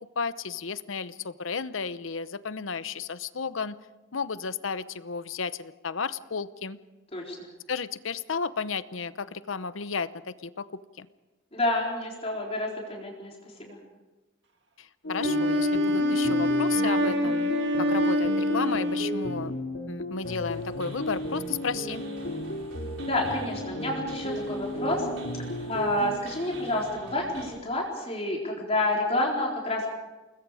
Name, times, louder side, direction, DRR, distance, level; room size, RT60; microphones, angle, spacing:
voice 1, 0.2-3.7 4.1-6.8 7.7-11.1 14.8-19.5 19.9-22.0, left 5 dB, 85° left, 14 dB, 0.8 m, -33 dB
voice 2, 11.5-13.3 13.6-13.8 23.0-25.1 25.6-29.9, left 1 dB, 30° left, -2 dB, 4.2 m, -29 dB
sound 1, 15.0-26.2, left 1 dB, 70° left, 2.4 m, -34 dB
Wind instrument woodwind instrument, 15.2-19.5, left 1 dB, 60° right, 2.1 m, -25 dB
sound 2, 20.2-27.5, right 1 dB, 80° right, 5.0 m, -45 dB
29.0 x 20.5 x 5.0 m, 1.2 s
head